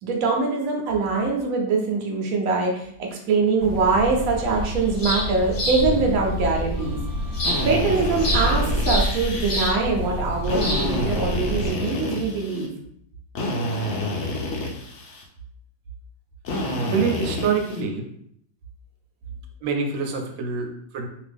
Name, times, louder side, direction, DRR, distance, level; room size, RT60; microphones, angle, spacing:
voice 1, 0.0-7.0 7.6-12.7, right 4 dB, 60° right, 0 dB, 1.0 m, -23 dB
sound 1, 3.6-11.7, equal, 45° left, 1.0 m, -27 dB
Drill, 7.4-9.7 10.4-12.7 13.4-15.2 16.4-17.8, left 1 dB, 75° left, 0.6 m, -28 dB
voice 2, 16.8-18.1 19.6-21.1, right 5 dB, 90° right, 4 dB, 1.3 m, -26 dB
2.8 x 2.5 x 3.4 m, 0.69 s
omnidirectional pair, 1.9 m